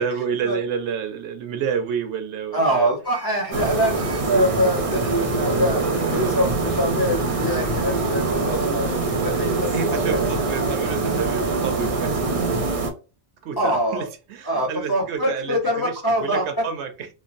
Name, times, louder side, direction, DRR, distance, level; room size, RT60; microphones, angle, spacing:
voice 1, 0.0-2.9 3.6-3.7 4.3-4.5 6.0-6.3 9.7-12.2 13.4-17.1, right 6 dB, 75° right, 7 dB, 0.9 m, -29 dB
voice 2, 2.5-5.8 6.1-10.3 10.6-10.7 13.6-14.1 14.5-16.4, equal, 25° left, -1 dB, 0.6 m, -24 dB
sound 1, 3.0-12.4, right 3 dB, 85° left, 1.4 m, -36 dB
sound 2, 3.5-12.9, right 3 dB, 45° right, 0.4 m, -24 dB
3.1 x 2.2 x 2.5 m, 0.32 s
omnidirectional pair, 1.2 m